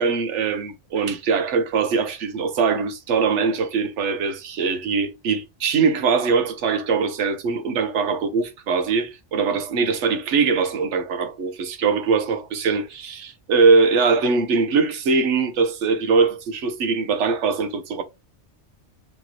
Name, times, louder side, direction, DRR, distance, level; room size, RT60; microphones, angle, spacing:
voice 1, 0.0-18.0, right 5 dB, 75° right, 1.0 m, -22 dB
5.0 x 2.9 x 2.8 m
omnidirectional pair, 1.3 m